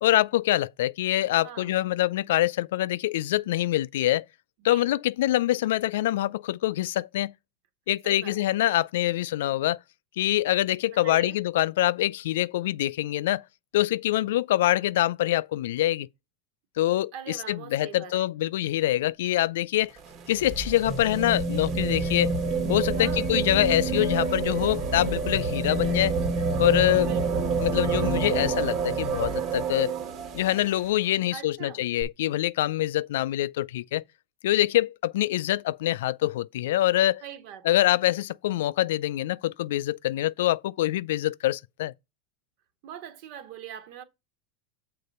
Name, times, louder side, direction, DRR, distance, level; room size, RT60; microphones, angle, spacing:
voice 1, 0.0-4.2 4.6-7.3 7.9-9.8 10.2-13.4 13.7-16.1 16.8-19.9 20.3-22.3 22.7-26.1 26.6-27.1 27.6-29.9 30.3-34.0 34.4-37.2 37.6-41.9, left 14 dB, 80° left, 0.3 m, -25 dB
voice 2, 8.0-8.4 10.9-11.4 17.1-18.3 23.0-23.3 27.0-27.5 31.3-31.8 37.2-37.8 42.8-44.0, right 10 dB, 55° right, 1.6 m, -42 dB
sound 1, 19.8-30.8 32.0-32.1, right 4 dB, 40° right, 1.4 m, -28 dB
6.7 x 4.0 x 5.4 m
supercardioid pair, 130°, 0 cm